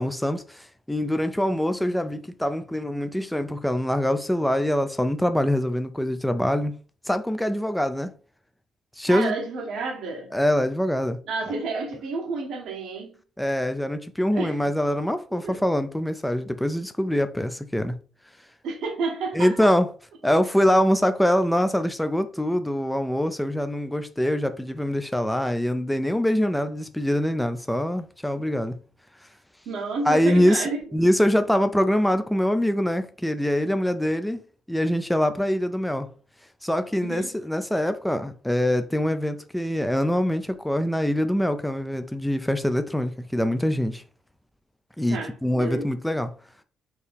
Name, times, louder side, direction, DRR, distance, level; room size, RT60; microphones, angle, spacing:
voice 1, 0.0-6.7 7.1-8.1 9.0-9.3 10.3-11.2 13.4-17.9 19.3-19.9 20.2-28.7 30.1-34.4 34.7-36.1 36.6-44.0 45.0-46.3, equal, 5° left, 0.4 m, -24 dB
voice 2, 9.1-10.3 11.3-13.1 14.3-14.7 15.3-15.6 18.6-19.7 29.7-30.8 37.0-37.3 45.1-45.9, right 3 dB, 80° right, 1.1 m, -30 dB
4.5 x 2.8 x 3.4 m
cardioid pair, 90°, 0 cm